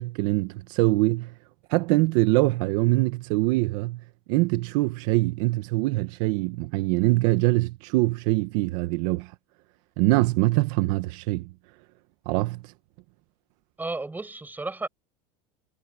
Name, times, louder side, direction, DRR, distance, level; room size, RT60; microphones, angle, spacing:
voice 1, 0.0-1.3 1.7-4.0 4.3-9.3 10.0-11.4 12.3-12.6, right 20 dB, 70° right, 1.3 m, -23 dB
voice 2, 13.8-14.9, right 3 dB, 10° right, 5.9 m, -33 dB
supercardioid pair, 135°, 18 cm